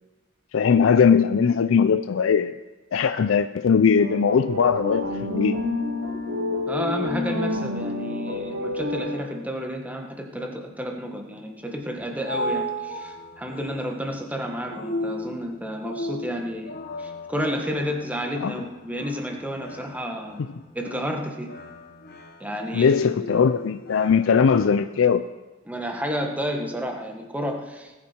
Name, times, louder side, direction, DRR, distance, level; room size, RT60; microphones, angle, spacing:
voice 1, 0.5-2.5 2.9-5.5 18.4-18.5 22.7-25.2, left 6 dB, 70° left, 10 dB, 0.4 m, -20 dB
sound 1, 4.0-9.4, left 2 dB, 65° right, 3.0 m, -29 dB
voice 2, 6.7-20.4 20.7-21.5 22.4-22.9 25.7-27.9, equal, 10° right, 2 dB, 1.4 m, -31 dB
sound 2, 11.8-24.7, equal, 50° left, 1.5 m, -36 dB
19.0 x 8.5 x 4.5 m, 1.2 s
head